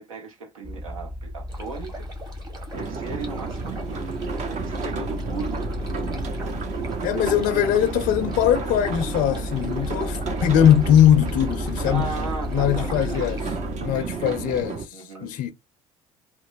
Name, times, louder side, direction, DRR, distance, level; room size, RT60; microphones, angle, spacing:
voice 1, 0.0-2.1 2.6-4.0 4.3-5.7 10.3-10.6 11.8-14.4 14.9-15.4, right 4 dB, 80° right, 0.8 m, -37 dB
sound 1, 0.6-14.7, left 2 dB, 5° right, 0.5 m, -33 dB
sound 2, 1.5-13.5, right 2 dB, 25° right, 1.2 m, -43 dB
sound 3, 2.7-14.8, right 5 dB, 45° right, 0.7 m, -32 dB
voice 2, 7.0-12.1 12.5-13.4 13.8-15.5, left 10 dB, 55° left, 0.5 m, -21 dB
3.0 x 2.1 x 2.5 m
hypercardioid pair, 60°, 17 cm